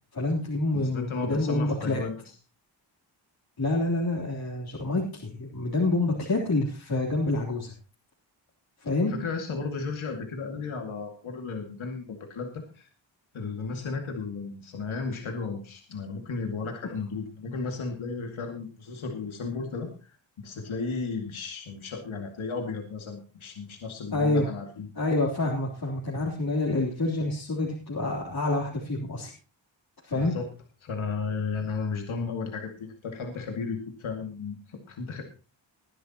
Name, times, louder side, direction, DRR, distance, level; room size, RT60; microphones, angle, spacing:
voice 1, 0.1-2.0 3.6-7.7 8.8-9.2 24.1-24.5 25.0-29.3 30.0-30.4, left 2 dB, 50° left, -4 dB, 3.4 m, -27 dB
voice 2, 0.7-2.2 9.1-12.9 13.3-24.9 30.1-30.5 30.8-35.2, left 4 dB, 85° left, 3 dB, 2.3 m, -34 dB
21.0 x 10.5 x 3.0 m, 0.34 s
wide cardioid pair, 85°, 47 cm